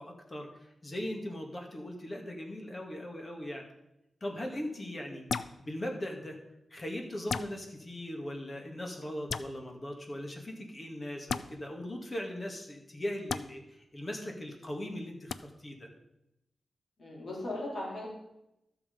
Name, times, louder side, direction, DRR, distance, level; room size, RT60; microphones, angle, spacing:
voice 1, 0.0-3.7 4.2-5.2 5.6-6.4 6.7-15.9, left 1 dB, 30° left, 1 dB, 2.0 m, -39 dB
sound 1, 5.3-5.5 7.3-7.5 9.3-9.5 11.3-11.4 13.3-13.4 15.3-15.4, left 5 dB, 65° left, 0.4 m, -33 dB
voice 2, 17.0-18.1, left 1 dB, 45° left, -4 dB, 4.3 m, -38 dB
12.5 x 7.3 x 5.3 m, 0.88 s
wide cardioid pair, 120°, 0 cm